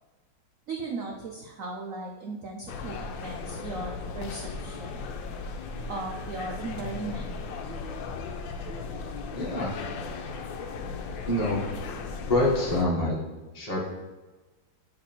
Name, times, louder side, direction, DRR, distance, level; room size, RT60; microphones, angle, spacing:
voice 1, 0.7-5.0 5.9-7.3, right 3 dB, 85° right, 0 dB, 0.7 m, -37 dB
sound 1, 2.7-12.8, left 4 dB, 75° left, 1.3 m, -36 dB
voice 2, 9.3-9.7 11.3-11.6 12.3-13.1 13.5-13.8, left 1 dB, 25° left, -5 dB, 0.9 m, -25 dB
7.5 x 3.3 x 4.4 m, 1.2 s
omnidirectional pair, 2.2 m